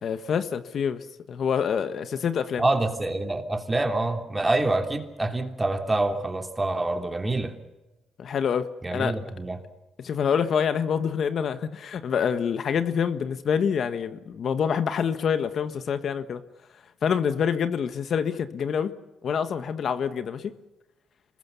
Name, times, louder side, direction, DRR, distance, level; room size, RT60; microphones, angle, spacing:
voice 1, 0.0-2.6 8.2-9.2 10.0-16.4 17.0-18.9 19.2-20.5, left 7 dB, 60° left, 1.4 m, -26 dB
voice 2, 2.6-7.5 8.8-9.6, right 2 dB, 15° right, 3.1 m, -26 dB
26.5 x 21.5 x 7.0 m
cardioid pair, 90°, 0 cm